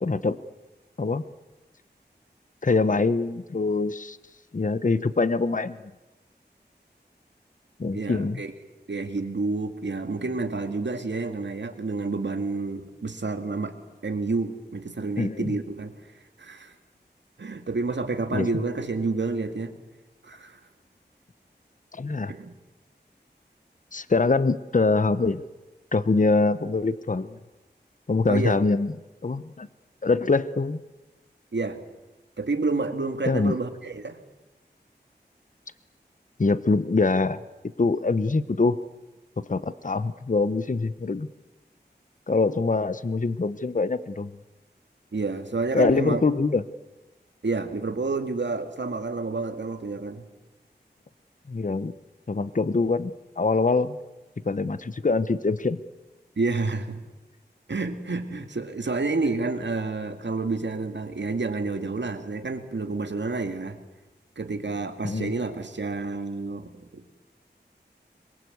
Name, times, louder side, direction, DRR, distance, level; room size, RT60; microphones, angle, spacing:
voice 1, 0.0-0.4 1.0-1.2 2.6-4.2 4.5-5.8 7.8-8.4 15.2-15.5 18.3-18.5 21.9-22.3 23.9-25.4 25.9-27.4 28.1-28.9 29.2-29.7 30.0-30.8 33.3-33.6 36.4-37.4 37.8-38.8 39.4-41.3 42.3-44.3 45.7-46.6 51.5-51.9 52.3-54.0 54.4-55.8 65.0-65.3, left 3 dB, 45° left, 14 dB, 0.9 m, -24 dB
voice 2, 7.9-8.5 8.9-13.8 14.0-15.9 16.4-16.7 17.4-19.8 20.2-20.6 22.3-22.5 28.3-28.6 31.5-31.8 32.4-34.2 45.1-46.2 47.4-50.2 56.4-57.0 57.7-63.8 64.4-67.2, right 3 dB, 80° right, 7 dB, 2.2 m, -29 dB
26.5 x 22.5 x 8.1 m, 1.1 s
wide cardioid pair, 70°, 18 cm